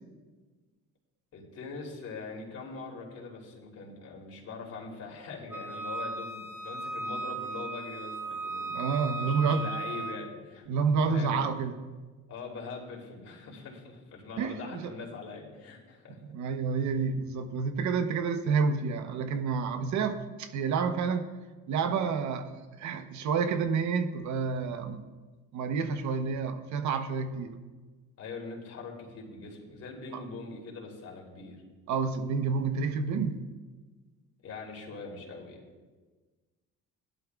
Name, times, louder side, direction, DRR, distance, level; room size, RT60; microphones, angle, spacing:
voice 1, 1.3-8.8 9.2-10.7 11.0-11.4 12.3-16.2 16.8-16.9 28.2-31.6 34.4-35.6, left 4 dB, 55° left, -1 dB, 3.2 m, -42 dB
Wind instrument woodwind instrument, 5.5-10.2, right 3 dB, 5° right, 1.4 m, -36 dB
voice 2, 8.7-9.6 10.7-11.8 14.4-14.9 16.2-21.3 21.7-22.5 22.8-25.0 25.5-27.6 30.1-30.2 31.9-33.4, right 5 dB, 70° right, 9 dB, 1.0 m, -29 dB
17.0 x 11.5 x 2.4 m, 1.3 s
cardioid pair, 110°, 30 cm